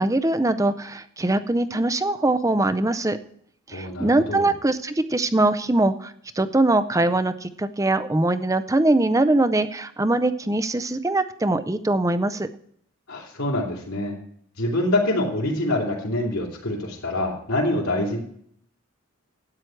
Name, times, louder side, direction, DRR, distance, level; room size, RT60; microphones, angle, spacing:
voice 1, 0.0-3.2 3.7-12.5, right 2 dB, 15° right, 12 dB, 0.5 m, -22 dB
voice 2, 3.7-4.5 13.1-14.2 14.6-18.2, left 1 dB, 75° left, -5 dB, 3.2 m, -25 dB
12.5 x 9.1 x 4.6 m, 0.64 s
head